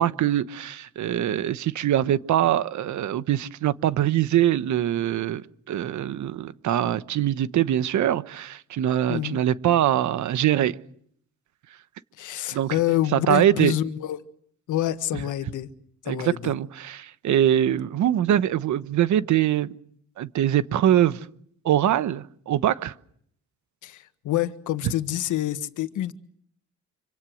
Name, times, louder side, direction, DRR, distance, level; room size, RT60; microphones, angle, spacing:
voice 1, 0.0-10.8 12.5-12.7 13.1-13.7 16.1-19.7 20.2-21.3 21.6-22.9, right 11 dB, 70° right, 1.2 m, -23 dB
voice 2, 12.2-14.2 14.7-15.7 16.0-16.5 23.8-26.1, left 13 dB, 80° left, 1.6 m, -27 dB
26.5 x 26.0 x 6.4 m
cardioid pair, 90°, 30 cm